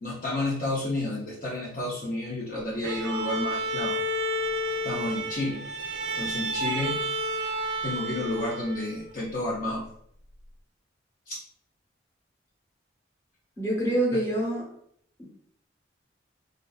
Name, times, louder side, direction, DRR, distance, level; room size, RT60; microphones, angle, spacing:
voice 1, 0.0-4.0 4.8-5.6 6.1-7.0 7.8-9.8 11.3-11.4 14.1-14.2, left 1 dB, 45° left, -5 dB, 0.5 m, -31 dB
Bowed string instrument, 2.8-9.1, right 1 dB, 65° right, 0.4 m, -31 dB
voice 2, 13.6-14.6 15.2-15.3, right 1 dB, 15° left, -5 dB, 0.8 m, -26 dB
2.5 x 2.3 x 2.3 m, 0.67 s
head